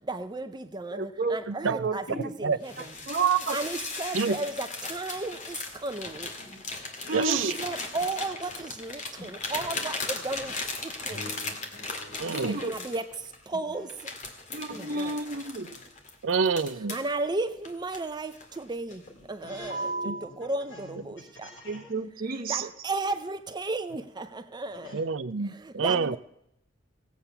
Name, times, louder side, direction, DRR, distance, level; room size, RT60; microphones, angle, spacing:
voice 1, 0.1-2.1 2.6-2.9 3.5-5.6 5.8-6.3 7.1-10.5 10.8-11.2 12.4-13.1 13.5-13.9 14.7-15.2 16.9-19.0 19.3-21.5 22.5-24.9 25.6-26.2, right 2 dB, 20° right, 10 dB, 0.6 m, -34 dB
voice 2, 0.9-1.4 1.7-2.0 2.8-3.6 7.1-7.6 12.3-12.7 14.5-15.7 21.6-22.7 25.9-26.1, right 5 dB, 50° right, 7 dB, 0.9 m, -30 dB
voice 3, 1.5-1.9 4.1-4.4 7.1-7.5 12.2-12.6 16.2-17.0 20.0-20.1 24.9-26.2, right 5 dB, 75° right, 14 dB, 0.6 m, -27 dB
sound 1, 2.6-13.4 13.9-17.1 17.6-18.6 18.9-19.2 19.6-20.2, left 2 dB, 40° left, 2.0 m, -37 dB
voice 4, 6.3-6.7 7.0-7.3 7.6-7.7 8.3-8.4 11.1-12.5 13.5-13.9 14.7-14.8 19.0-21.0 21.4-21.8 24.8-24.9, left 2 dB, 70° left, -4 dB, 6.5 m, -46 dB
17.5 x 8.2 x 5.7 m, 0.80 s
head